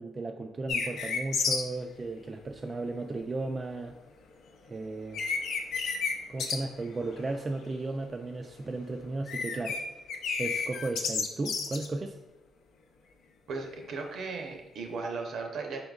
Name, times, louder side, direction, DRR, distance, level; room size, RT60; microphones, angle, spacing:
voice 1, 0.0-4.0 4.7-5.2 6.3-9.8 10.4-12.2, right 2 dB, 30° right, 4 dB, 0.3 m, -35 dB
sound 1, 0.7-1.6 4.7-4.8 5.1-6.1 6.4-6.6 6.8-7.4 7.7-8.0 9.1-9.8 10.1-11.9, left 5 dB, 80° left, 0.5 m, -31 dB
voice 2, 13.5-15.8, right 4 dB, 70° right, 2 dB, 0.8 m, -36 dB
4.3 x 3.8 x 2.4 m, 1.0 s
cardioid pair, 90°, 0 cm